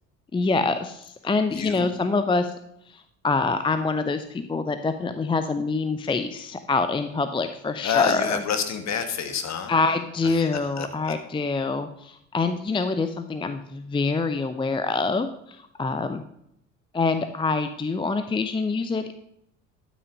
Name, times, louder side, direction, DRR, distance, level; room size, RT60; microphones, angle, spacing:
voice 1, 0.3-2.5 2.9-8.4 9.7-16.2 16.9-19.1, left 3 dB, 10° left, 9 dB, 0.6 m, -25 dB
voice 2, 1.5-1.9 7.8-9.7 10.2-10.5 10.8-11.1, left 7 dB, 40° left, 8 dB, 1.6 m, -28 dB
12.0 x 6.2 x 5.2 m, 0.75 s
figure-of-eight pair, 60°, 41 cm